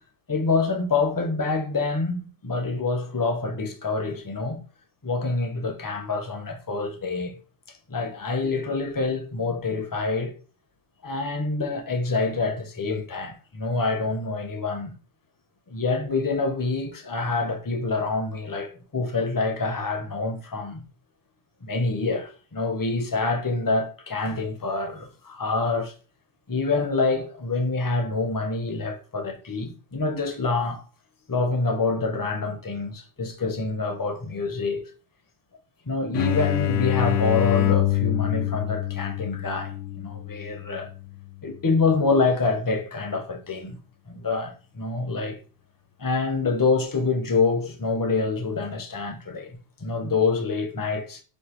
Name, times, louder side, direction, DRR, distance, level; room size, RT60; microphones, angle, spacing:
voice 1, 0.3-4.6 5.0-7.4 7.9-10.3 11.0-14.9 15.7-20.8 21.6-25.9 26.5-30.8 31.3-34.9 35.9-40.9 41.4-43.8 44.1-45.4 46.0-51.2, left 3 dB, 25° left, 0.5 m, -26 dB
sound 1, 36.1-41.6, left 13 dB, 85° left, 1.0 m, -26 dB
6.4 x 2.7 x 3.0 m
omnidirectional pair, 1.3 m